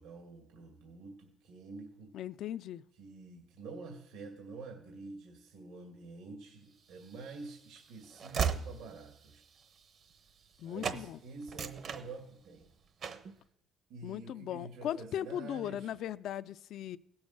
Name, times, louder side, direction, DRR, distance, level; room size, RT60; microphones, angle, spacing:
voice 1, 0.0-2.1 3.0-9.4 10.6-12.7 13.1-13.3 13.9-15.9, right 3 dB, 75° right, 1 dB, 2.1 m, -48 dB
voice 2, 2.1-2.8 10.6-11.2 14.0-17.0, left 11 dB, 60° left, 14 dB, 0.4 m, -38 dB
Train / Slam, 6.9-10.6 10.8-11.0 11.4-12.6 13.0-13.3, right 7 dB, 45° right, 0.9 m, -37 dB
16.5 x 7.0 x 6.5 m, 0.73 s
cardioid pair, 135°, 0 cm